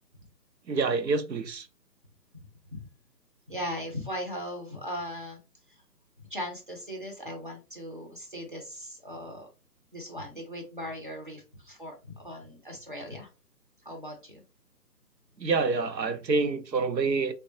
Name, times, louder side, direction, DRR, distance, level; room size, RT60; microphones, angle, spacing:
voice 1, 0.7-1.7 15.4-17.3, right 4 dB, 85° right, 0.6 m, -27 dB
voice 2, 3.5-5.4 5.7-5.8 6.2-9.5 9.9-13.3 13.8-14.4, equal, 35° right, 0.5 m, -38 dB
3.4 x 2.2 x 2.6 m
figure-of-eight pair, 145°, 49 cm